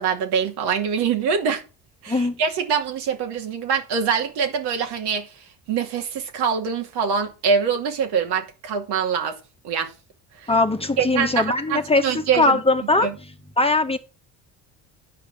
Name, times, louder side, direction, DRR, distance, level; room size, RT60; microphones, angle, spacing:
voice 1, 0.0-1.6 2.0-5.3 5.7-9.4 9.6-9.9 10.4-10.5 11.0-12.6 13.0-13.1, right 6 dB, 70° right, 2.6 m, -24 dB
voice 2, 2.1-2.4 10.5-13.1 13.6-14.0, left 2 dB, 15° left, 1.4 m, -20 dB
10.5 x 5.0 x 8.2 m
supercardioid pair, 75°, 42 cm